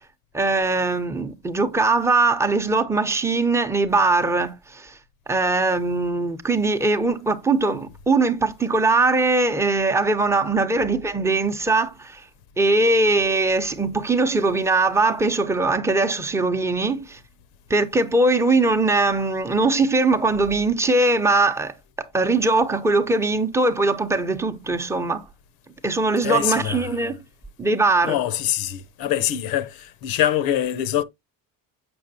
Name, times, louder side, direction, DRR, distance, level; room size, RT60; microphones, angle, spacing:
voice 1, 0.3-5.0 5.3-12.2 12.6-17.2 17.7-25.2 25.8-27.1 27.6-28.1, right 3 dB, 10° right, 0.7 m, -21 dB
voice 2, 26.2-27.2 28.0-31.0, left 11 dB, 75° left, 0.7 m, -24 dB
7.8 x 5.8 x 2.7 m
cardioid pair, 145°, 36 cm